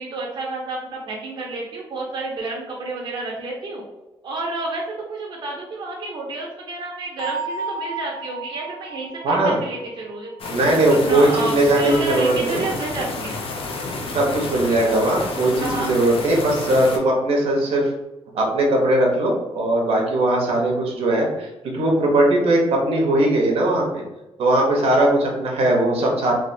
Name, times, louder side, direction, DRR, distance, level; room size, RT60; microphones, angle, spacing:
voice 1, 0.0-3.8 4.2-10.5 10.9-13.4 15.6-15.9, right 2 dB, 50° right, -2 dB, 0.5 m, -30 dB
Bell, 7.2-10.8, right 3 dB, 25° left, 0.6 m, -33 dB
voice 2, 9.2-9.6 10.5-12.6 14.1-17.9 18.3-24.0 24.4-26.3, right 1 dB, 80° right, -1 dB, 0.8 m, -19 dB
sound 1, 10.4-17.0, left 3 dB, 65° left, 0.5 m, -30 dB
3.3 x 2.4 x 2.6 m, 1.0 s
wide cardioid pair, 165°, 10 cm